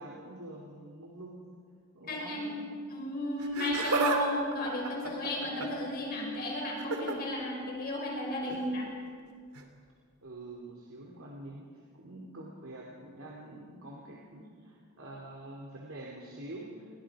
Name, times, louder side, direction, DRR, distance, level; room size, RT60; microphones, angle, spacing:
voice 1, 0.0-1.4 1.9-2.7 10.2-16.9, right 1 dB, 65° right, -3 dB, 2.9 m, -46 dB
voice 2, 2.1-2.5 2.9-8.9, left 1 dB, 45° left, -1 dB, 5.7 m, -34 dB
Laughter, 3.4-4.2 4.5-5.9 6.8-7.2 8.5-8.6 9.6-9.7, right 3 dB, 85° right, 2.9 m, -31 dB
30.0 x 23.0 x 4.9 m, 2.1 s
head